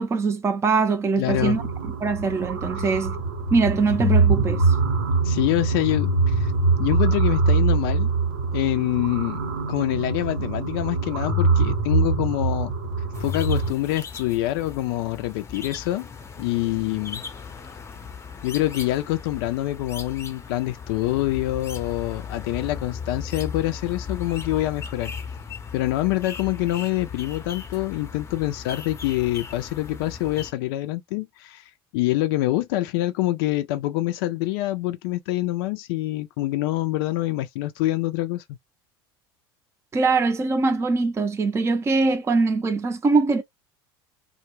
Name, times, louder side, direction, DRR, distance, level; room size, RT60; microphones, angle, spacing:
voice 1, 0.0-1.6 2.0-3.2 3.5-4.7 39.9-43.4, right 4 dB, 20° right, 0.5 m, -22 dB
voice 2, 1.2-1.6 2.8-2.9 5.2-6.5 6.8-8.1 8.5-9.4 9.7-12.7 13.2-16.1 16.4-17.2 18.4-25.1 25.7-38.4, left 16 dB, 70° left, 0.4 m, -26 dB
sound 1, 1.3-13.7, right 3 dB, 75° right, 0.9 m, -23 dB
sound 2, 13.1-30.5, left 6 dB, 20° left, 0.6 m, -37 dB
2.2 x 2.1 x 3.0 m
hypercardioid pair, 85°, 13 cm